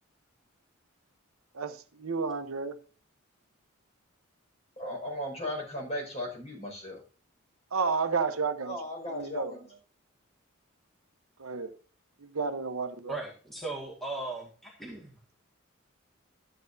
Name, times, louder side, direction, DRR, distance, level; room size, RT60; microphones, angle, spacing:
voice 1, 1.5-2.8 7.7-8.8 9.1-9.6 11.4-11.7 12.2-13.1, right 5 dB, 85° right, 0.9 m, -31 dB
voice 2, 4.8-7.0 8.6-9.7, left 1 dB, 30° left, 5.3 m, -36 dB
voice 3, 13.1-15.2, right 2 dB, ahead, 1.9 m, -38 dB
13.0 x 8.9 x 2.7 m
head